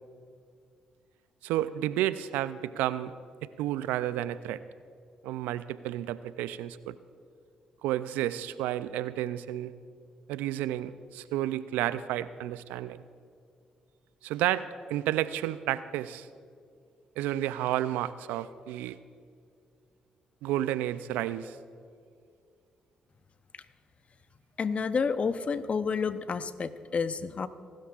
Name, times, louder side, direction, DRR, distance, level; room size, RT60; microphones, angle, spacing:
voice 1, 1.4-3.1 3.6-4.6 5.2-7.0 7.8-9.7 10.3-13.0 14.2-16.3 17.2-19.0 20.4-21.6, right 13 dB, 80° right, 15 dB, 0.4 m, -31 dB
voice 2, 24.6-27.5, left 5 dB, 45° left, 12 dB, 0.8 m, -30 dB
26.5 x 12.5 x 2.5 m, 2.3 s
hypercardioid pair, 50°, 3 cm